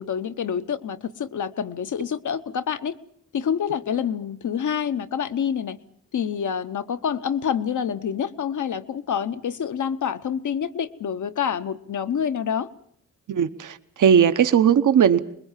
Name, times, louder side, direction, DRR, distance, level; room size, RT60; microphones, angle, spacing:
voice 1, 0.0-3.0 3.3-5.8 6.1-12.7, left 8 dB, 70° left, 10 dB, 1.1 m, -27 dB
voice 2, 13.3-15.2, right 8 dB, 75° right, 11 dB, 1.1 m, -18 dB
25.0 x 21.5 x 7.4 m, 0.66 s
wide cardioid pair, 140°, 31 cm